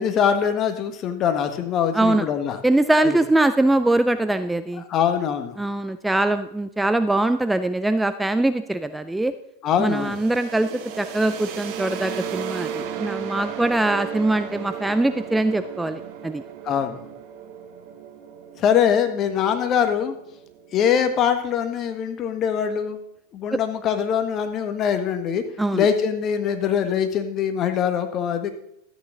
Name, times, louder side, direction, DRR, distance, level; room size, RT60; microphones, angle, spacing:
voice 1, 0.0-2.6 3.0-3.2 4.8-5.6 9.6-10.2 16.6-17.0 18.6-20.1 20.7-23.0 23.3-25.4 25.7-28.5, left 8 dB, 35° left, 8 dB, 1.6 m, -23 dB
voice 2, 1.9-2.3 2.6-4.8 5.6-9.3 9.8-10.7 11.0-16.4 23.5-23.6 25.6-25.9, right 2 dB, 5° right, 11 dB, 0.5 m, -22 dB
sound 1, 9.9-21.5, right 8 dB, 45° right, 1.5 m, -35 dB
13.0 x 8.9 x 3.9 m, 0.75 s
figure-of-eight pair, 90°, 0 cm